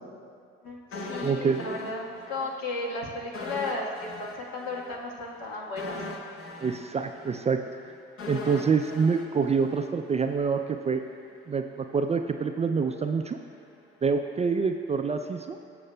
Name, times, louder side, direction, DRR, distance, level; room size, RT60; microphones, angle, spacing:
voice 1, 0.6-6.0, left 2 dB, 65° left, -2 dB, 1.4 m, -34 dB
sound 1, 0.9-2.5 2.8-3.0 3.3-10.4 10.7-10.9, left 2 dB, 45° left, 1.0 m, -40 dB
voice 2, 1.2-1.8 6.6-7.6 8.3-11.0 11.5-13.4 14.0-15.6, right 5 dB, 25° right, 6 dB, 0.3 m, -26 dB
14.0 x 6.4 x 2.2 m, 2.4 s
hypercardioid pair, 55°, 30 cm